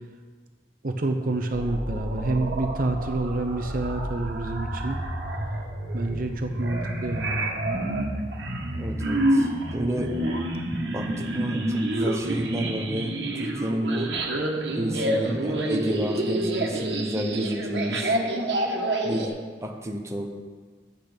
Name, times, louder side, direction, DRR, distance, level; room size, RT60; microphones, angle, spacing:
voice 1, 0.8-5.0 5.9-7.5, right 2 dB, 50° right, 5 dB, 0.8 m, -28 dB
sound 1, 1.5-19.3, right 1 dB, 85° right, 1.5 m, -28 dB
voice 2, 8.7-10.2 10.9-14.1 14.8-18.2 19.0-19.3 19.6-20.3, right 1 dB, 15° right, 2 dB, 0.9 m, -30 dB
10.5 x 8.6 x 5.1 m, 1.5 s
head